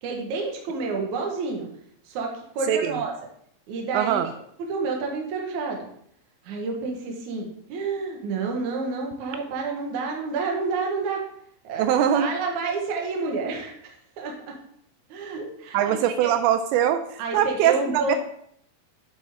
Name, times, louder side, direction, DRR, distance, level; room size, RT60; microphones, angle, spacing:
voice 1, 0.0-1.7 2.0-3.1 3.7-4.2 4.6-5.9 6.4-11.2 11.6-14.6 15.1-16.3 17.2-18.2, right 4 dB, 60° right, 1 dB, 2.1 m, -29 dB
voice 2, 2.7-3.0 3.9-4.3 11.8-12.3 15.7-18.2, right 10 dB, 85° right, 9 dB, 2.8 m, -22 dB
8.9 x 7.2 x 3.7 m, 0.68 s
omnidirectional pair, 5.2 m